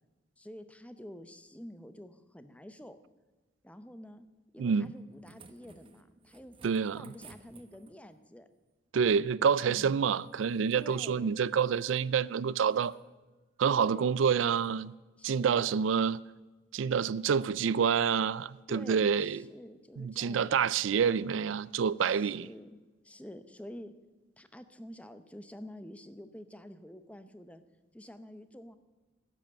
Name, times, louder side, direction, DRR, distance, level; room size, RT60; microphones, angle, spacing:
voice 1, 0.4-3.0 3.6-4.3 4.5-6.6 6.9-8.5 9.7-10.0 10.7-11.3 13.7-14.3 15.2-15.7 18.7-20.6 22.0-23.9 24.4-27.6 27.9-28.8, equal, 5° left, 0.7 m, -48 dB
voice 2, 4.6-4.9 6.6-7.1 8.9-13.0 13.6-14.9 15.2-16.2 16.7-19.4 20.0-22.5, right 6 dB, 85° right, 0.4 m, -28 dB
sound 1, 4.8-8.2 10.1-11.1 11.5-12.1 12.6-13.0 13.7-13.9 14.5-14.8 16.1-16.2, right 4 dB, 30° right, 1.0 m, -58 dB
12.5 x 7.8 x 9.3 m
head